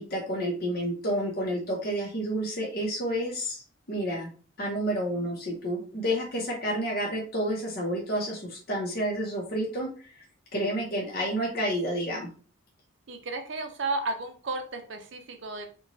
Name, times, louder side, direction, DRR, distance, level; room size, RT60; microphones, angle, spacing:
voice 1, 0.0-3.6 3.9-4.3 4.6-10.1 10.5-12.3, equal, 50° left, -2 dB, 0.7 m, -30 dB
voice 2, 13.1-15.7, right 3 dB, 60° right, 5 dB, 0.5 m, -33 dB
2.9 x 2.2 x 2.6 m, 0.39 s
head